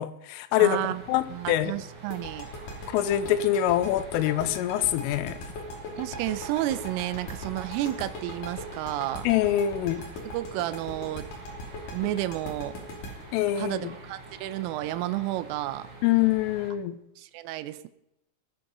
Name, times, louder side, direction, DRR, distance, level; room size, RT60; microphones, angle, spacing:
voice 1, 0.0-0.8 1.1-1.8 2.9-5.4 9.2-10.0 13.3-13.9 16.0-17.0, left 12 dB, 80° left, 3.4 m, -25 dB
voice 2, 0.6-1.0 1.3-2.5 6.0-9.3 10.3-11.3 11.9-12.8 13.6-15.9 17.2-17.9, right 15 dB, 85° right, 3.3 m, -31 dB
sound 1, 0.7-16.7, right 3 dB, 45° right, 4.1 m, -46 dB
sound 2, 2.1-14.8, left 1 dB, 45° left, 3.9 m, -39 dB
20.5 x 9.5 x 5.3 m
omnidirectional pair, 6.0 m